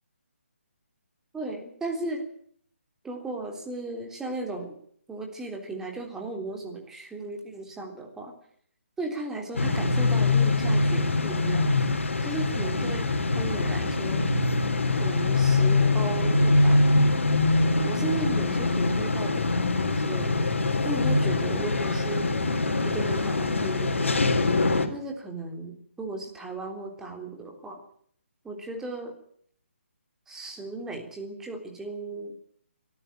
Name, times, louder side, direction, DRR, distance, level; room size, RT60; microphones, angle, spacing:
voice 1, 1.3-2.2 3.0-4.8 5.1-8.3 9.0-14.3 14.9-16.9 17.8-20.5 20.8-22.3 22.8-27.8 28.4-29.1 30.3-32.3, right 2 dB, 5° right, 2 dB, 3.4 m, -36 dB
sound 1, 9.5-24.9, left 2 dB, 70° left, 3.8 m, -24 dB
23.5 x 13.5 x 9.2 m, 0.63 s
figure-of-eight pair, 150°, 7 cm